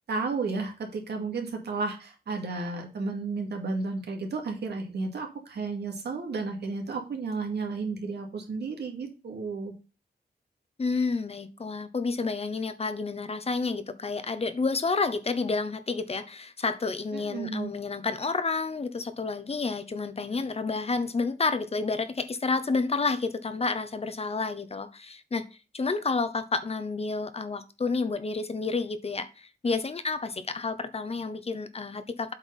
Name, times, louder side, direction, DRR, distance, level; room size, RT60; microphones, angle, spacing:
voice 1, 0.1-9.7 17.1-17.7, right 4 dB, 90° right, 2.3 m, -33 dB
voice 2, 10.8-32.3, left 4 dB, 40° left, 0.9 m, -30 dB
8.1 x 4.6 x 5.4 m
wide cardioid pair, 110°, 17 cm